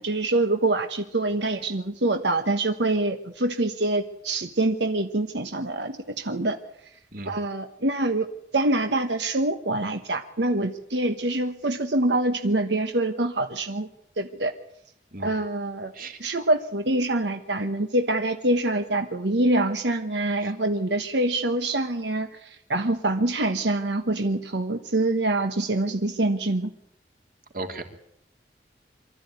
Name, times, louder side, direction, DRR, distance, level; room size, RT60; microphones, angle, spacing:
voice 1, 0.0-6.6 7.2-8.3 8.5-13.9 14.2-14.5 15.2-15.9 16.2-26.7, right 2 dB, 85° right, 7 dB, 1.3 m, -25 dB
voice 2, 7.1-7.3 15.1-15.3 15.9-16.2 20.4-20.5 27.5-27.8, right 2 dB, 55° right, 5 dB, 3.1 m, -35 dB
24.5 x 13.5 x 9.5 m, 0.74 s
head